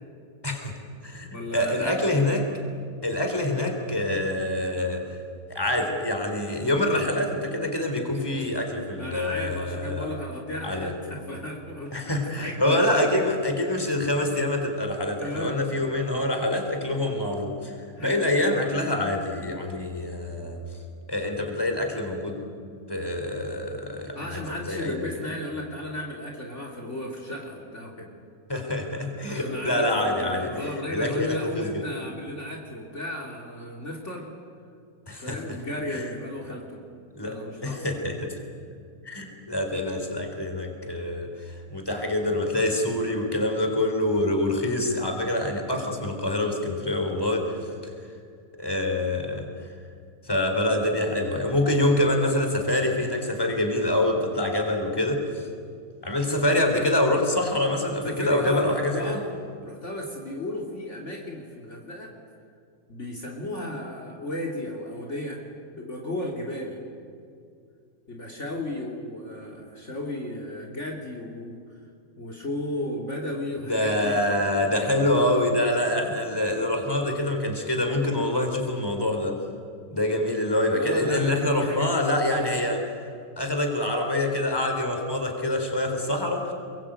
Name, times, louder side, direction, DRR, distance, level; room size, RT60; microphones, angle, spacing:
voice 1, 0.4-0.7 1.0-2.5 3.0-5.0 5.5-10.2 10.6-10.9 11.9-17.7 18.0-20.6 21.1-22.4 22.9-25.1 28.5-30.5 30.9-31.8 35.1-35.4 35.9-36.1 37.1-38.4 39.0-47.6 48.6-49.7 50.2-55.5 56.0-59.2 73.7-79.4 79.9-82.8 83.4-86.5, left 1 dB, 15° left, 3 dB, 4.0 m, -26 dB
voice 2, 1.3-2.3 8.9-13.3 13.6-13.9 15.2-15.6 18.0-18.3 24.1-28.1 29.3-34.3 35.2-36.8 37.2-38.1 50.7-50.8 58.0-59.3 59.6-62.1 62.9-65.4 65.7-66.8 68.1-71.6 72.2-74.3 80.7-82.6, left 1 dB, 45° left, 0 dB, 3.2 m, -34 dB
29.0 x 22.5 x 9.0 m, 2.4 s
omnidirectional pair, 1.7 m